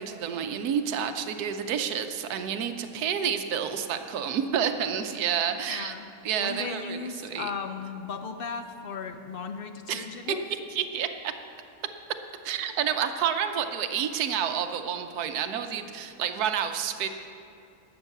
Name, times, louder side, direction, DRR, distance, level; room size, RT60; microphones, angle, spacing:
voice 1, 0.0-5.9 6.2-7.5 9.9-10.0 10.8-11.3 12.4-17.1, right 8 dB, 80° right, 7 dB, 1.2 m, -29 dB
voice 2, 5.7-6.1 6.4-10.5, left 5 dB, 60° left, 7 dB, 0.5 m, -36 dB
12.0 x 8.1 x 6.7 m, 2.6 s
omnidirectional pair, 1.6 m